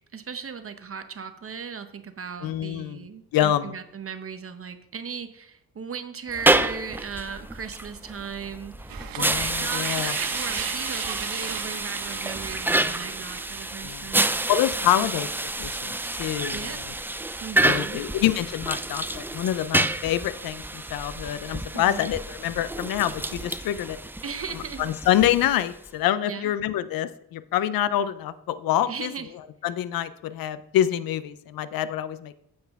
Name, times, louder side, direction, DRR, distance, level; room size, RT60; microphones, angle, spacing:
voice 1, 0.1-14.3 16.0-16.2 16.5-17.0 17.4-18.0 21.7-22.1 24.2-24.8 26.2-26.5 28.9-29.3, right 6 dB, 40° right, 9 dB, 0.8 m, -37 dB
voice 2, 2.4-3.0 3.3-3.7 9.2-10.1 13.8-14.1 14.5-15.3 15.6-16.9 17.6-24.0 24.8-29.1 29.6-32.3, left 11 dB, 70° left, 14 dB, 0.5 m, -26 dB
sound 1, 6.3-25.9, right 2 dB, 5° right, 0.3 m, -29 dB
sound 2, 8.9-13.8, right 10 dB, 70° right, 0.8 m, -36 dB
9.2 x 8.0 x 3.5 m, 0.75 s
cardioid pair, 100°, 36 cm